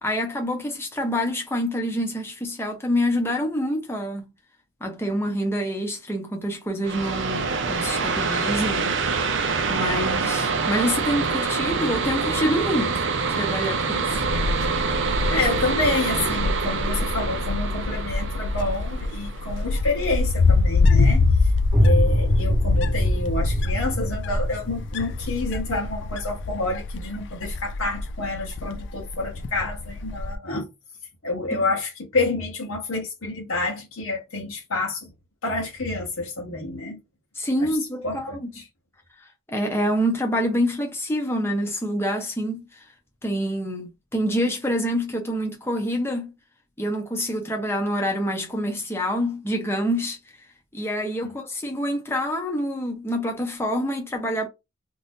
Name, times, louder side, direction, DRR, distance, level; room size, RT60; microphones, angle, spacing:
voice 1, 0.0-4.3 4.8-9.0 9.7-14.2 31.5-31.6 37.4-38.3 39.5-42.7 43.2-46.3 46.8-50.2 50.7-54.5, equal, 10° left, 0.7 m, -26 dB
sound 1, 6.8-20.2, right 4 dB, 55° right, 0.5 m, -26 dB
Wind, 14.1-30.4, left 3 dB, 55° left, 0.3 m, -25 dB
voice 2, 15.3-21.5 21.8-30.7 31.2-35.1 35.4-37.0 37.6-37.7 38.0-38.7 51.2-51.3, left 2 dB, 70° left, 1.0 m, -28 dB
sound 2, 21.7-27.3, equal, 10° right, 1.1 m, -25 dB
2.7 x 2.5 x 3.5 m
head